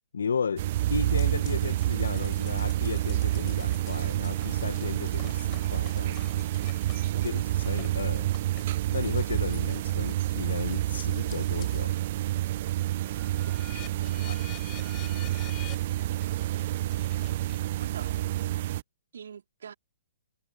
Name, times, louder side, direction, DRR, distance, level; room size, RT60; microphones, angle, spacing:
voice 1, 0.1-6.5 7.2-8.3 8.9-11.9 14.3-14.4, left 6 dB, 65° left, 1.8 m, -34 dB
sound 1, 0.6-18.8, right 14 dB, 45° right, 0.3 m, -28 dB
sound 2, 1.2-11.9 12.3-18.0, left 20 dB, 30° left, 5.5 m, -50 dB
voice 2, 13.5-14.5 17.8-18.2 19.1-19.7, right 7 dB, 60° right, 3.8 m, -45 dB
figure-of-eight pair, 120°, 0 cm